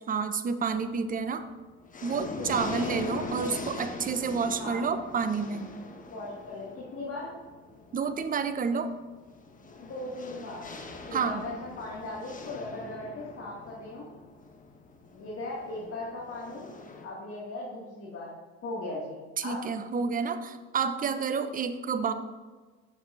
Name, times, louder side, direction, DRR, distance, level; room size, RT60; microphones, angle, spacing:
voice 1, 0.1-1.5 2.0-5.7 7.9-8.9 11.1-11.4 19.4-22.1, right 5 dB, 25° right, 10 dB, 0.6 m, -29 dB
sound 1, 0.7-1.2 1.6-17.1, left 2 dB, 25° left, 1.1 m, -42 dB
voice 2, 2.4-2.8 4.6-4.9 6.1-7.4 9.8-10.7 11.1-14.0 15.1-16.7 17.0-18.3 18.6-19.7, left 2 dB, 40° left, -5 dB, 2.1 m, -38 dB
10.5 x 6.2 x 2.5 m, 1.3 s
hypercardioid pair, 70°, 33 cm